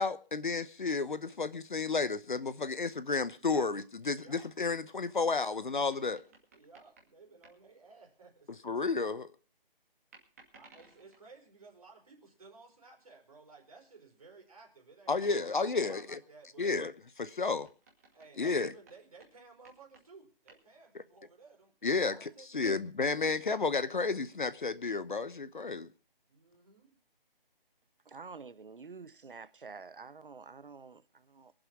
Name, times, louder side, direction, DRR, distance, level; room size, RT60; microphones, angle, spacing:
voice 1, 0.0-6.2 8.6-9.3 15.1-16.2 16.6-16.9 17.2-17.7 18.4-18.7 21.8-25.9, left 4 dB, 55° left, 1.0 m, -32 dB
voice 2, 3.4-3.7 4.1-4.5 6.5-8.5 10.5-16.7 18.1-23.3 26.3-27.0, right 4 dB, 40° right, 4.6 m, -56 dB
sound 1, 5.4-7.7 10.1-11.4 14.1-14.4 14.8-14.9 16.3-21.0, right 3 dB, 15° right, 2.3 m, -62 dB
voice 3, 28.0-31.5, right 4 dB, 65° right, 1.1 m, -48 dB
23.0 x 7.7 x 6.0 m
hypercardioid pair, 180°, 29 cm